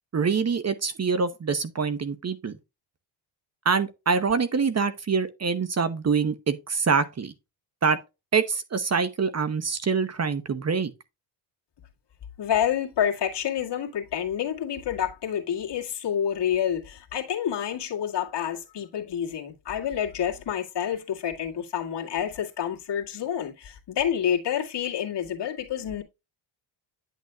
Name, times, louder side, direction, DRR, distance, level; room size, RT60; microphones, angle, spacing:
voice 1, 0.1-2.5 3.6-7.3 7.8-8.0 8.3-10.9, right 5 dB, 30° right, 0.9 m, -25 dB
voice 2, 12.4-26.0, left 9 dB, 55° left, 2.0 m, -28 dB
10.0 x 6.5 x 2.3 m
cardioid pair, 90°, 49 cm